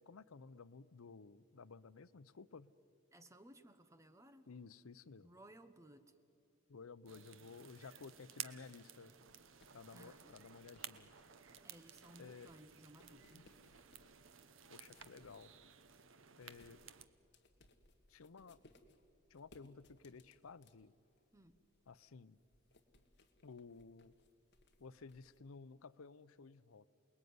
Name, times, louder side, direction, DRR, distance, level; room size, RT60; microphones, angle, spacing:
voice 1, 0.0-2.7 4.5-5.3 6.7-9.1 9.7-11.1 12.2-12.5 13.3-13.5 14.7-15.5 16.4-16.8 18.1-18.6 19.3-20.9 21.9-22.4 23.4-24.1 24.8-26.9, left 4 dB, 90° left, 17 dB, 0.6 m, -55 dB
voice 2, 3.1-4.5 5.2-6.2 9.9-10.4 11.6-13.5 21.3-21.6, right 1 dB, 15° right, 10 dB, 0.9 m, -60 dB
sound 1, 7.1-17.1, right 9 dB, 70° right, 1.0 m, -55 dB
sound 2, 9.1-25.4, left 1 dB, 55° left, 1.6 m, -70 dB
28.5 x 20.0 x 9.5 m, 2.7 s
head